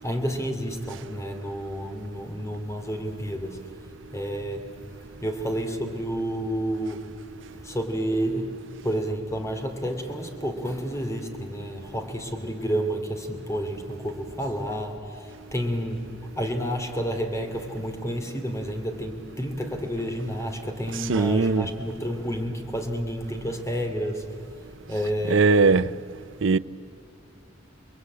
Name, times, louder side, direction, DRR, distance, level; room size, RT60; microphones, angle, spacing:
voice 1, 0.0-3.8 4.1-7.3 7.5-25.8, equal, 15° left, 2.7 m, -30 dB
voice 2, 21.1-21.7 25.3-25.9 26.4-26.6, right 4 dB, 75° right, 0.6 m, -19 dB
29.5 x 22.0 x 8.6 m
head